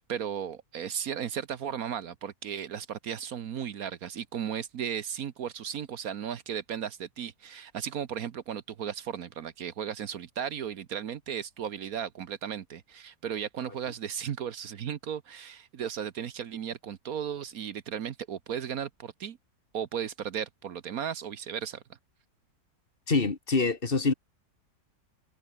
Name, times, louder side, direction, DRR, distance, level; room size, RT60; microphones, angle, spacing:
voice 1, 0.0-19.4 19.7-21.8, right 8 dB, 65° right, 1.4 m, -35 dB
voice 2, 23.1-24.1, left 4 dB, 35° left, 2.2 m, -25 dB
omnidirectional pair, 1.7 m